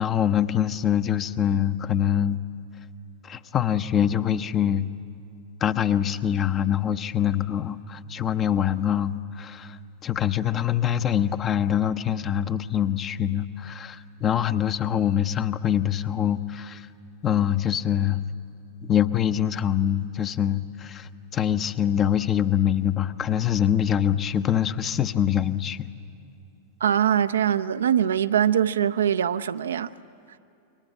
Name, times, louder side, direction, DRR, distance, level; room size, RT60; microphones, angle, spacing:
voice 1, 0.0-2.4 3.2-4.9 5.6-9.8 10.0-16.9 17.2-18.2 18.8-25.8, left 10 dB, 30° left, 0.8 m, -24 dB
voice 2, 26.8-29.9, right 9 dB, 65° right, 0.6 m, -22 dB
28.0 x 23.0 x 8.7 m
figure-of-eight pair, 90°, 0 cm